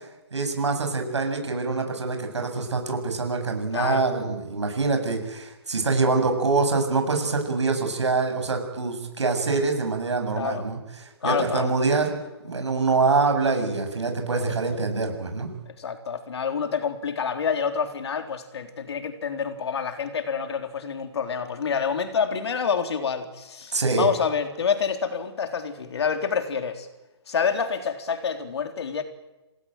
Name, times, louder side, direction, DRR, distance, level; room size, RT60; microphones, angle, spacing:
voice 1, 0.3-10.8 11.2-12.2 12.4-15.5 23.7-24.1, right 3 dB, 85° right, 5 dB, 7.7 m, -25 dB
voice 2, 3.7-4.1 10.3-10.6 11.2-11.7 14.3-14.6 15.7-26.9 27.3-29.0, left 6 dB, 70° left, 6 dB, 3.9 m, -27 dB
27.0 x 19.5 x 9.3 m, 1.1 s
hypercardioid pair, 140°, 14 cm